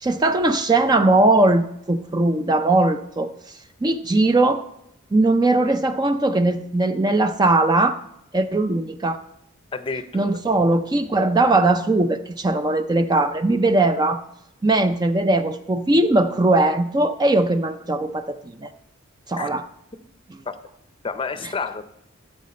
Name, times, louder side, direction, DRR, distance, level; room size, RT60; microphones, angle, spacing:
voice 1, 0.0-4.6 5.1-8.0 8.3-9.2 10.1-14.2 14.6-18.7 19.3-19.7 21.4-21.5, right 2 dB, 20° right, 9 dB, 0.4 m, -20 dB
voice 2, 9.7-10.3 19.4-19.5 20.5-20.6 21.0-21.8, left 4 dB, 25° left, 11 dB, 0.6 m, -29 dB
13.0 x 7.4 x 4.2 m, 0.80 s
head